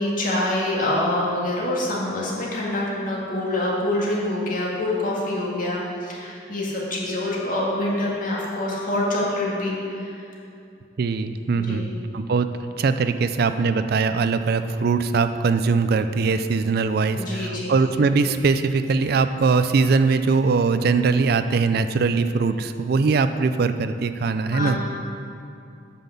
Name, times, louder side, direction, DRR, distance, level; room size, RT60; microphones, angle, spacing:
voice 1, 0.0-10.2 11.5-11.9 17.1-17.8 24.5-24.8, left 1 dB, 50° left, -4 dB, 2.2 m, -26 dB
voice 2, 11.0-24.8, right 4 dB, 60° right, 10 dB, 0.4 m, -21 dB
9.0 x 5.9 x 6.9 m, 2.6 s
head